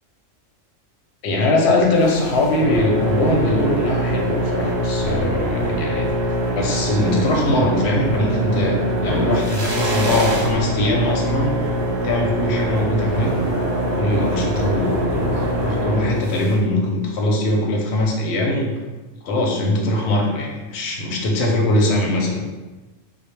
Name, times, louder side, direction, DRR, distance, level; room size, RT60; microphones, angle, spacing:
voice 1, 1.2-6.1 6.5-11.6 12.0-13.3 14.0-18.7 19.2-22.5, left 1 dB, 65° left, 0 dB, 0.7 m, -21 dB
sound 1, 1.9-16.5, right 1 dB, 55° right, 0.7 m, -23 dB
2.1 x 2.0 x 3.0 m, 1.2 s
omnidirectional pair, 1.3 m